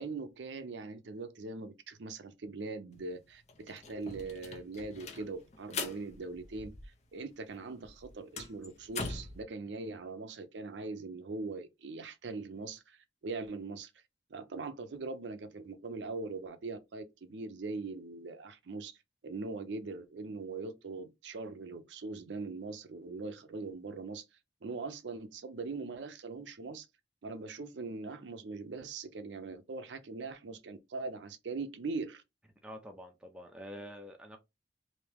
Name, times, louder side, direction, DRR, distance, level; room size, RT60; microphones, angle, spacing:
voice 1, 0.0-6.7 7.1-13.9 14.3-18.9 19.2-24.2 24.6-26.9 27.2-32.2, right 3 dB, 80° right, 0.5 m, -41 dB
sound 1, 2.9-3.0 3.3-7.2 7.5-9.4, left 4 dB, 40° left, 0.6 m, -42 dB
voice 2, 32.6-34.4, equal, 5° right, 0.6 m, -47 dB
3.5 x 2.7 x 2.9 m
head